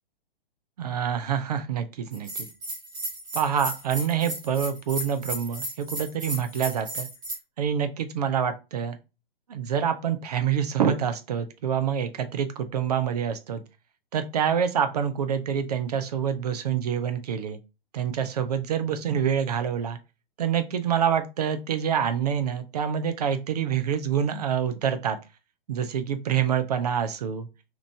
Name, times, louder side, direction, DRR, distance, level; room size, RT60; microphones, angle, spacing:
voice 1, 0.8-2.5 3.3-7.1 7.6-9.0 9.5-13.6 14.1-17.6 17.9-20.0 20.4-25.2 25.7-27.5, right 8 dB, 40° right, 8 dB, 0.4 m, -26 dB
Bell, 2.1-7.4, right 1 dB, 15° right, 0.8 m, -34 dB
3.0 x 2.4 x 3.3 m, 0.28 s
figure-of-eight pair, 120°, 30 cm